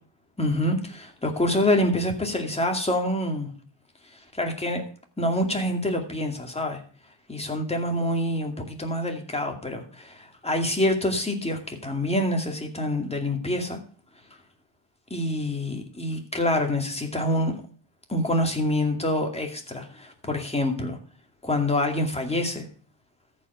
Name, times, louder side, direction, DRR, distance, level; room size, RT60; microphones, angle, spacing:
voice 1, 0.4-3.5 4.3-4.8 5.2-6.8 7.3-13.8 15.1-17.6 18.1-21.0 21.4-22.6, left 1 dB, 15° left, 3 dB, 2.3 m, -26 dB
14.0 x 5.3 x 6.8 m, 0.42 s
cardioid pair, 125°, 47 cm